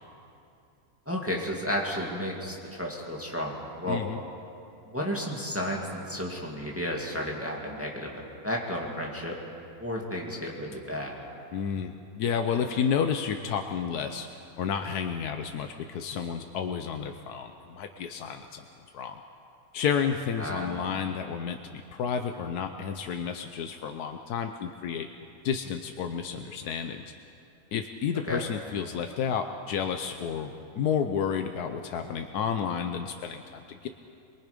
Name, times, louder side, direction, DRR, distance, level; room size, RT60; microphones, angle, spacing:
voice 1, 1.1-4.0 4.9-9.4 9.8-11.2 20.4-20.9 28.2-28.4, equal, 10° right, -2 dB, 2.2 m, -33 dB
voice 2, 3.9-4.2 11.5-18.6 18.9-19.2 19.7-25.1 25.4-27.0 27.7-33.9, left 7 dB, 85° left, 6 dB, 1.3 m, -31 dB
24.5 x 22.5 x 5.2 m, 2.6 s
omnidirectional pair, 1.6 m